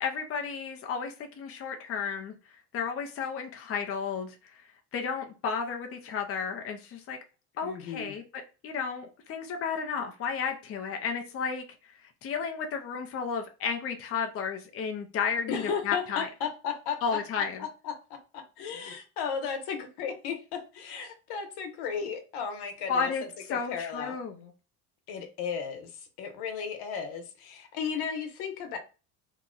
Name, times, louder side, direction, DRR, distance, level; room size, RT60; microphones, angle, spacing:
voice 1, 0.0-4.7 4.9-7.2 7.6-8.2 8.6-16.3 17.0-17.6 22.9-24.5, left 6 dB, 35° left, 0.6 m, -33 dB
voice 2, 7.6-8.1 15.5-17.2 17.6-17.9 18.6-23.1 23.5-24.1 25.1-25.9 26.2-28.8, left 6 dB, 80° left, 1.0 m, -34 dB
2.8 x 2.2 x 3.8 m
cardioid pair, 130°, 39 cm